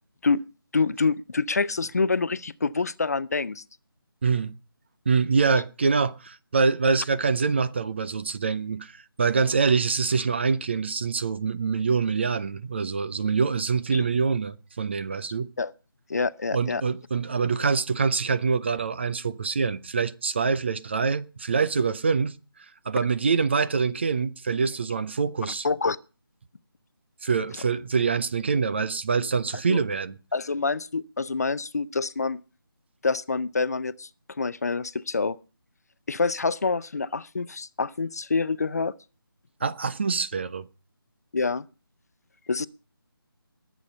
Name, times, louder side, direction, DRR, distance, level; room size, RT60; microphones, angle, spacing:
voice 1, 0.7-3.6 13.9-14.0 15.6-15.7 16.1-16.8 25.6-26.0 29.7-29.8 30.3-32.4 33.0-34.1 34.4-35.4 36.1-38.9 41.3-41.7 42.5-42.7, left 4 dB, 45° left, 0.6 m, -26 dB
voice 2, 4.2-4.5 5.1-15.5 16.5-25.7 27.2-30.2 39.6-40.7, right 5 dB, 30° right, 0.6 m, -25 dB
21.0 x 8.5 x 5.4 m
figure-of-eight pair, 155°, 12 cm